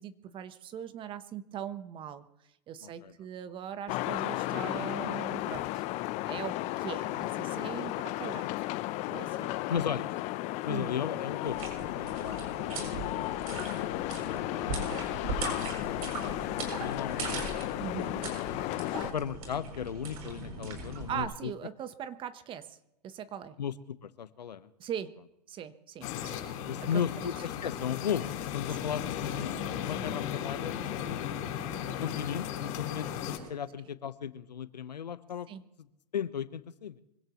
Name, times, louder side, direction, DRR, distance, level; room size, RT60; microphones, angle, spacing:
voice 1, 0.0-2.3 2.7-5.7 6.3-8.6 9.1-9.9 10.7-11.0 17.8-18.2 21.1-22.8 23.0-23.5 24.8-25.1 25.5-26.4 26.8-27.3 28.7-28.8 35.5-35.6, right 9 dB, 25° right, 12 dB, 1.0 m, -40 dB
voice 2, 2.8-3.1 9.7-10.1 10.6-13.2 13.5-14.9 15.1-17.6 19.1-21.5 23.6-24.7 26.7-31.3 32.0-35.5 36.1-37.0, left 8 dB, 85° left, 13 dB, 1.1 m, -36 dB
sound 1, 3.9-19.1, left 17 dB, 35° left, 0.7 m, -34 dB
sound 2, 11.4-21.2, right 3 dB, 60° right, 7.3 m, -39 dB
sound 3, 26.0-33.4, left 10 dB, 50° left, 5.6 m, -36 dB
25.0 x 17.0 x 3.1 m, 0.84 s
hypercardioid pair, 125°, 21 cm